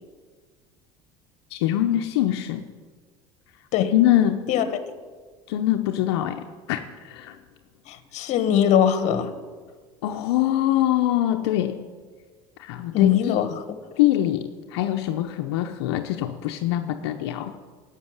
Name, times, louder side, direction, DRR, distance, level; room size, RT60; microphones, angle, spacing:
voice 1, 1.5-2.6 3.8-4.5 5.5-7.4 10.0-11.8 12.6-13.4 14.0-14.4 14.7-17.5, left 13 dB, 90° left, 5 dB, 0.8 m, -23 dB
voice 2, 7.9-9.3 12.9-13.8, left 9 dB, 60° left, 10 dB, 1.6 m, -21 dB
12.0 x 8.2 x 9.6 m, 1.5 s
supercardioid pair, 105°, 14 cm